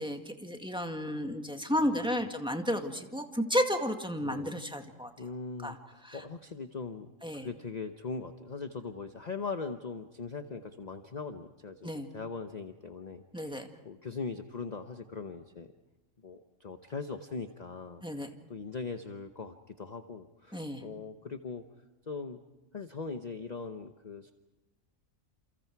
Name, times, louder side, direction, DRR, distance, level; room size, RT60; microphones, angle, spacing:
voice 1, 0.0-5.1 5.6-5.8 6.0-6.2 7.2-7.5 11.8-12.1 13.3-13.7 18.0-18.3 20.5-20.8, equal, 5° right, 4 dB, 2.0 m, -32 dB
voice 2, 1.7-2.2 4.2-4.6 5.2-15.7 16.2-21.6 22.1-22.4 22.7-24.3, left 4 dB, 35° left, 7 dB, 1.0 m, -41 dB
30.0 x 29.0 x 4.7 m, 1.1 s
omnidirectional pair, 1.4 m